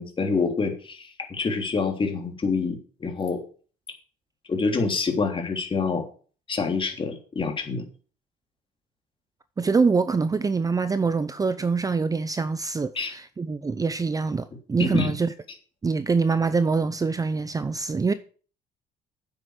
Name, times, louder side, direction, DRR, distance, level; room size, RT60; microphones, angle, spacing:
voice 1, 0.0-3.4 4.5-6.1 6.5-7.9 12.9-13.1 14.8-15.1, left 4 dB, 30° left, 3.2 m, -26 dB
voice 2, 9.6-15.3 15.8-18.1, right 4 dB, 20° right, 0.7 m, -24 dB
9.8 x 7.8 x 6.6 m
cardioid pair, 110°, 17 cm